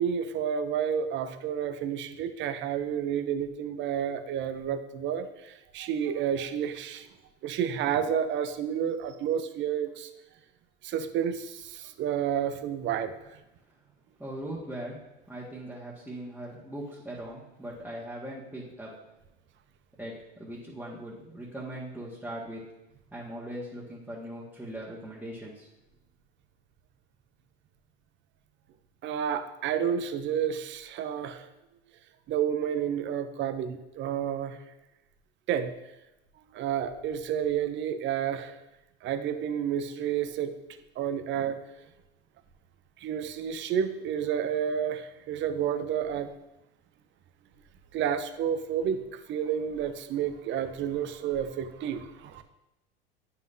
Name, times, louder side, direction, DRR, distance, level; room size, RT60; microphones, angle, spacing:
voice 1, 0.0-7.1 7.4-10.1 10.8-13.4 29.0-31.5 32.3-34.6 35.5-35.7 36.5-38.6 39.0-40.5 41.0-41.6 43.0-46.3 47.9-52.4, right 8 dB, 40° right, 10 dB, 0.7 m, -30 dB
voice 2, 14.2-15.0 15.3-18.9 20.0-22.6 23.1-25.7, right 1 dB, 5° right, -7 dB, 1.6 m, -40 dB
8.9 x 5.6 x 2.7 m, 0.95 s
hypercardioid pair, 90°, 29 cm